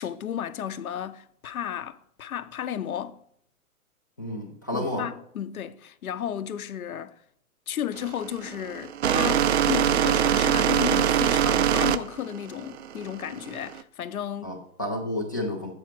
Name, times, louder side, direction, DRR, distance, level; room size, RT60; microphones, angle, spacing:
voice 1, 0.0-3.2 4.7-7.2 7.7-14.6, left 10 dB, 75° left, 0.7 m, -33 dB
voice 2, 4.2-5.0 14.4-15.7, left 1 dB, 15° left, 0.3 m, -31 dB
sound 1, 8.0-13.8, right 9 dB, 50° right, 0.5 m, -23 dB
7.1 x 4.8 x 5.8 m
hypercardioid pair, 135°, 43 cm